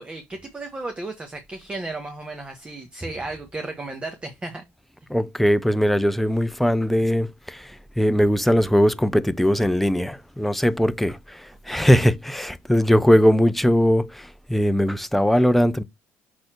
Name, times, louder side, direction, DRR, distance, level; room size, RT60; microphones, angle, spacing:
voice 1, 0.0-4.6 11.7-12.1, right 2 dB, 25° right, 1.3 m, -34 dB
voice 2, 5.1-15.8, equal, 5° left, 0.6 m, -20 dB
6.5 x 4.2 x 4.4 m
supercardioid pair, 85°, 5 cm